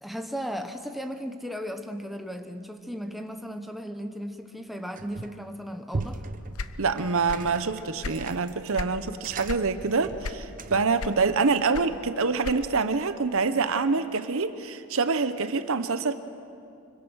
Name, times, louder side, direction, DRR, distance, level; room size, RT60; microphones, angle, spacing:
voice 1, 0.0-6.2, equal, ahead, 6 dB, 0.9 m, -36 dB
sound 1, 5.0-5.5 5.9-11.0, right 3 dB, 40° right, 0.8 m, -39 dB
sound 2, 6.5-7.6 7.8-9.0 9.4-9.7 10.2-10.7 11.0-12.9, left 4 dB, 70° left, 0.8 m, -35 dB
voice 2, 6.8-16.1, right 4 dB, 65° right, 11 dB, 0.9 m, -26 dB
25.5 x 23.0 x 6.3 m, 2.5 s
head